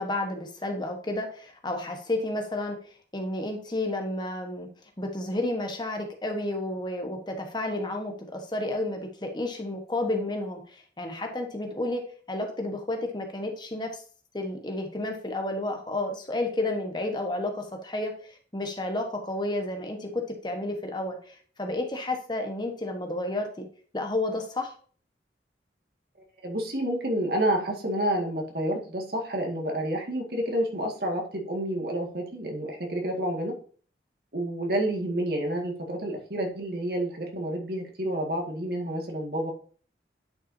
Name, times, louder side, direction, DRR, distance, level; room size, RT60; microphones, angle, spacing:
voice 1, 0.0-2.8 3.1-4.7 5.0-12.0 12.3-14.0 14.3-23.7 23.9-24.7, left 2 dB, 25° left, 3 dB, 1.2 m, -31 dB
voice 2, 26.4-33.5 34.3-39.5, right 1 dB, 60° right, 1 dB, 2.0 m, -29 dB
10.0 x 5.9 x 2.7 m, 0.43 s
head